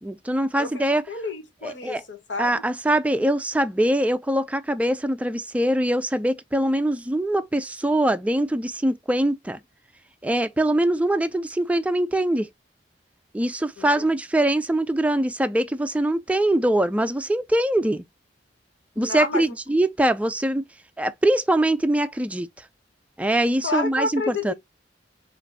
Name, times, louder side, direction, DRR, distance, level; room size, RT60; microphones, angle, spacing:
voice 1, 0.0-1.0 1.6-2.0 2.4-9.6 10.2-12.5 13.3-18.0 19.0-20.6 21.0-22.5 23.2-24.5, right 1 dB, 10° right, 0.3 m, -23 dB
voice 2, 1.1-2.6 13.8-14.0 19.0-19.5 23.6-24.5, left 3 dB, 90° left, 1.4 m, -30 dB
5.2 x 2.5 x 2.7 m
head